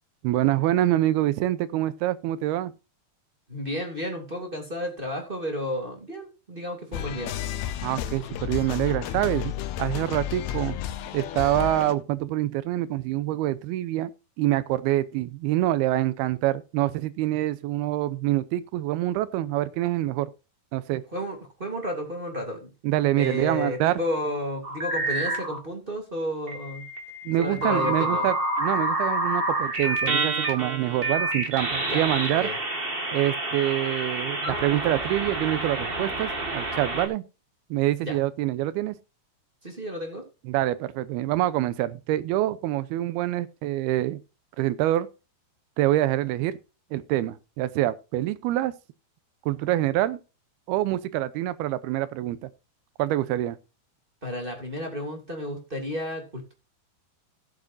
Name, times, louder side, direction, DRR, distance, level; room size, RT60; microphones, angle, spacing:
voice 1, 0.2-2.7 7.8-9.5 9.8-10.8 11.1-14.1 14.4-20.3 20.7-21.0 22.8-24.0 27.3-32.5 33.1-37.2 37.7-39.0 40.4-44.2 44.6-45.1 45.8-46.6 46.9-48.7 49.5-50.2 50.7-52.5 53.0-53.6, right 14 dB, 85° right, 2.7 m, -26 dB
voice 2, 3.5-7.3 21.1-22.7 23.2-26.8 27.4-28.3 31.9-32.0 32.3-32.6 38.0-38.2 39.6-40.2 54.2-56.5, equal, 15° right, 2.3 m, -32 dB
sound 1, 6.9-11.9, left 11 dB, 75° left, 2.9 m, -32 dB
sound 2, 24.6-25.6 26.5-37.1, right 2 dB, 50° right, 0.6 m, -28 dB
17.0 x 7.5 x 2.7 m
omnidirectional pair, 4.5 m